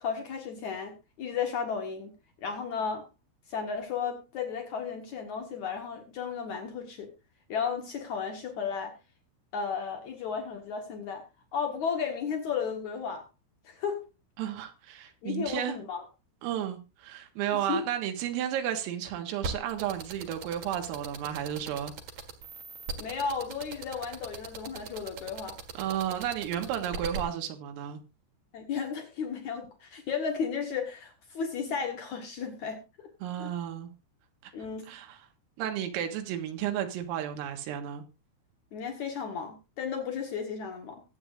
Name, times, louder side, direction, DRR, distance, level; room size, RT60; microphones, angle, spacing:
voice 1, 0.0-2.1 2.4-3.1 3.5-7.1 7.5-8.9 9.5-11.2 11.5-13.2 13.6-14.0 15.2-16.0 17.5-17.8 23.0-25.6 28.5-33.1 33.4-33.5 34.5-34.9 38.7-41.0, left 6 dB, 90° left, 3 dB, 1.6 m, -34 dB
voice 2, 14.4-15.8 16.4-21.9 25.8-28.0 33.2-33.9 34.4-34.5 34.9-35.2 35.6-38.1, right 10 dB, 85° right, 5 dB, 4.1 m, -33 dB
sound 1, 19.4-27.2, right 5 dB, 60° right, 2.2 m, -38 dB
22.5 x 8.3 x 2.5 m, 0.28 s
omnidirectional pair, 5.9 m